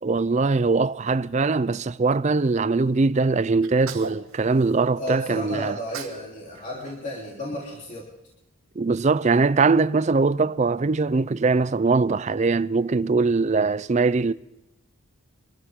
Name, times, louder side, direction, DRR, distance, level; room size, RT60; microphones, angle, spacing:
voice 1, 0.0-5.8 8.8-14.3, right 3 dB, 30° right, 0.4 m, -21 dB
Sneeze, 3.6-5.2 5.7-6.3 6.5-8.0, right 5 dB, 80° right, 2.0 m, -40 dB
voice 2, 5.0-8.1, equal, 35° left, 3.4 m, -33 dB
25.0 x 14.5 x 3.7 m
head